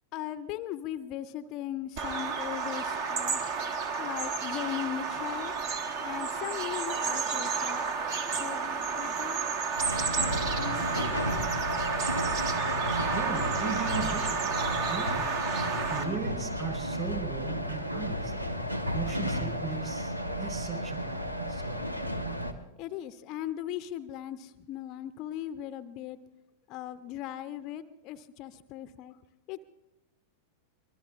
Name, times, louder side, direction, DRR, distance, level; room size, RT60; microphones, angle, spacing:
voice 1, 0.1-3.5 4.0-5.5 6.0-7.8 8.3-9.5 10.1-11.4 22.8-26.2 26.7-29.2 29.5-29.6, left 11 dB, 40° left, 13 dB, 0.5 m, -38 dB
Bird vocalization bird call bird song, 2.0-16.0, right 5 dB, 45° right, 1.5 m, -31 dB
sound 1, 9.8-22.5, equal, 85° right, 1.0 m, -33 dB
voice 2, 13.1-15.3 15.9-18.3 18.9-21.9, right 7 dB, 30° right, 3 dB, 4.6 m, -38 dB
24.5 x 21.0 x 2.4 m, 0.96 s
figure-of-eight pair, 90°, 0 cm